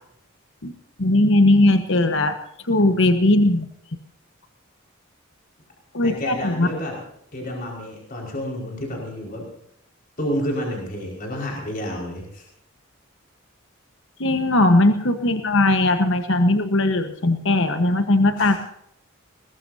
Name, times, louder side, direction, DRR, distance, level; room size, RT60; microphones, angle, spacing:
voice 1, 1.0-2.4 2.7-3.6 5.9-6.7 14.2-18.6, left 2 dB, 60° left, 7 dB, 1.3 m, -18 dB
voice 2, 6.0-7.0 7.3-9.5 10.2-12.5 18.4-18.6, equal, 40° left, -1 dB, 5.2 m, -30 dB
21.5 x 20.5 x 2.8 m, 0.72 s
head